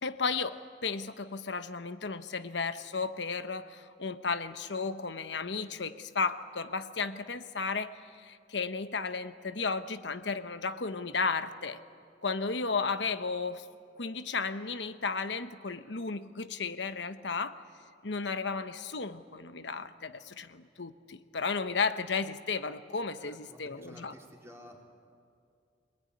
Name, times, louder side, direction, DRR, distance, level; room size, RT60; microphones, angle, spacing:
voice 1, 0.0-11.8 12.2-13.7 14.0-17.6 18.0-24.1, left 4 dB, 75° left, 10 dB, 1.1 m, -34 dB
voice 2, 23.2-25.0, equal, 15° right, -1 dB, 3.6 m, -52 dB
26.0 x 21.5 x 9.8 m, 2.3 s
head